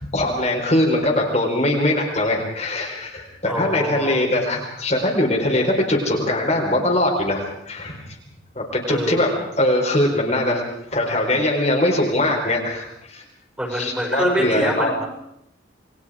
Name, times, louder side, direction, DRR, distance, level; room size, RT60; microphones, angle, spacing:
voice 1, 0.1-8.0 8.6-9.3 9.6-10.6 10.9-13.2 13.7-14.9, left 1 dB, 35° left, -1 dB, 4.4 m, -21 dB
voice 2, 3.5-4.4 8.9-9.5 13.6-15.0, equal, 5° right, 1 dB, 5.6 m, -25 dB
29.0 x 21.5 x 5.0 m, 0.77 s
head